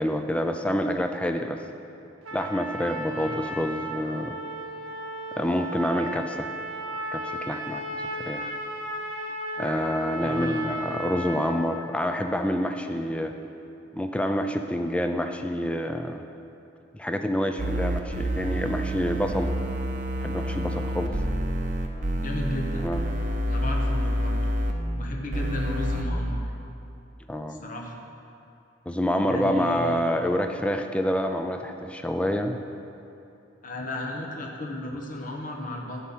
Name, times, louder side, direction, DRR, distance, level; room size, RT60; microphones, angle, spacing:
voice 1, 0.0-1.6 2.3-4.4 5.3-6.5 7.1-8.5 9.6-13.3 13.9-16.2 16.9-19.5 20.2-21.1 22.8-23.0 27.3-27.6 28.9-32.6, equal, 5° left, 6 dB, 0.4 m, -27 dB
Trumpet, 2.2-11.7, right 1 dB, 80° right, 0.9 m, -35 dB
voice 2, 10.2-10.8 22.1-22.9 23.5-24.4 24.9-26.4 27.5-28.0 29.2-30.0 33.6-36.0, left 1 dB, 40° left, 0 dB, 1.0 m, -34 dB
sound 1, 17.6-24.7 25.3-26.0, equal, 40° right, 0.7 m, -28 dB
10.0 x 5.5 x 7.3 m, 2.7 s
head